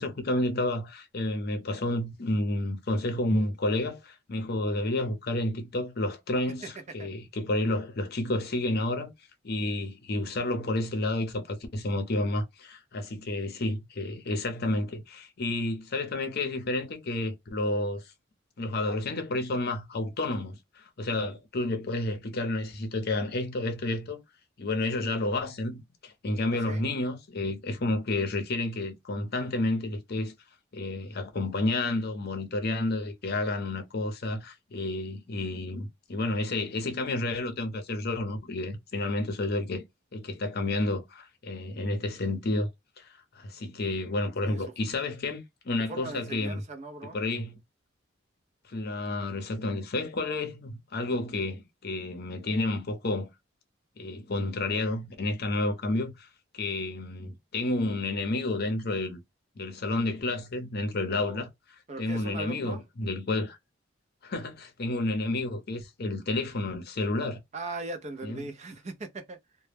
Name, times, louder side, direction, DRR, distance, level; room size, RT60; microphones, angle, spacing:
voice 1, 0.0-9.1 9.4-18.1 18.6-24.2 24.6-30.3 30.7-39.8 40.1-42.7 43.0-46.6 47.0-47.6 48.7-53.3 54.0-56.3 56.5-59.2 59.6-61.5 62.0-63.6 64.2-67.4 68.2-68.4, left 2 dB, 50° left, 0.7 m, -30 dB
voice 2, 6.6-7.1 26.5-26.8 44.4-44.7 45.9-47.2 61.1-61.5 61.9-62.8 67.5-69.4, right 2 dB, 35° right, 0.5 m, -39 dB
2.2 x 2.0 x 3.2 m
head